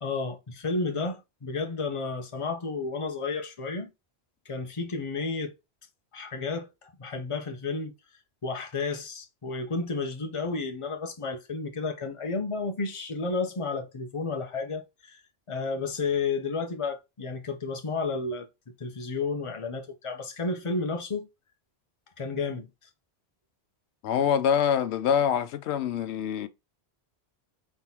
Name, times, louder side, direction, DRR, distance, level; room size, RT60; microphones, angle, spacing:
voice 1, 0.0-3.9 4.5-5.5 6.1-7.9 8.4-15.2 15.5-18.5 18.8-21.3 22.2-22.7, left 4 dB, 30° left, 0.9 m, -32 dB
voice 2, 24.0-26.5, left 8 dB, 90° left, 0.9 m, -25 dB
4.0 x 3.7 x 2.8 m
omnidirectional pair, 1.1 m